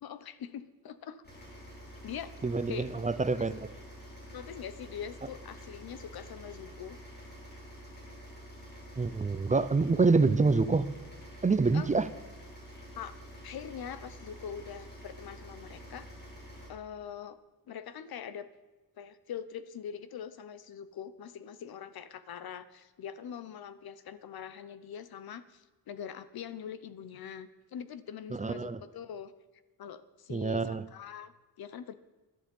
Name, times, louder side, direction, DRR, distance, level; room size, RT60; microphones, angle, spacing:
voice 1, 0.0-1.2 2.0-2.3 2.7-2.8 3.3-3.5 4.3-7.0 11.7-11.9 13.0-13.2 13.4-16.1 16.7-17.4 17.7-18.5 19.0-29.3 29.8-31.9, left 8 dB, 75° left, 14 dB, 1.0 m, -43 dB
sound 1, 1.2-16.7, equal, 25° left, 4.8 m, -48 dB
voice 2, 2.4-3.6 9.0-10.9 11.4-12.1 28.3-28.8 30.3-30.8, right 4 dB, 20° right, 13 dB, 0.6 m, -26 dB
17.5 x 11.5 x 5.4 m, 1.2 s
wide cardioid pair, 140°, 37 cm